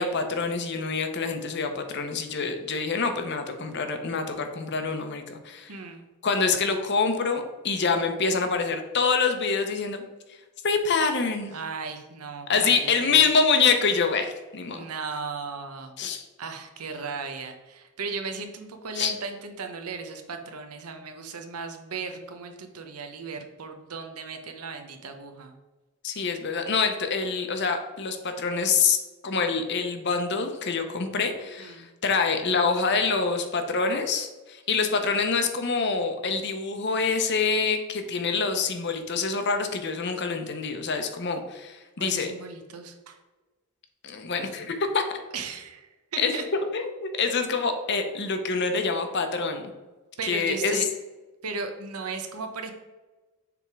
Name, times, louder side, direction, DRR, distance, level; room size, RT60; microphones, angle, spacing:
voice 1, 0.0-5.7 6.2-10.0 10.6-11.6 12.5-14.9 16.0-16.3 19.0-19.1 26.0-29.0 29.2-42.3 44.0-45.1 46.2-49.6 50.3-50.9, left 4 dB, 50° left, 6 dB, 0.8 m, -26 dB
voice 2, 5.7-6.1 11.5-13.2 14.7-16.0 16.4-25.5 31.6-31.8 42.0-43.2 45.3-46.4 50.2-50.9 51.4-52.7, right 4 dB, 90° right, 6 dB, 0.9 m, -36 dB
7.0 x 3.6 x 4.7 m, 1.2 s
head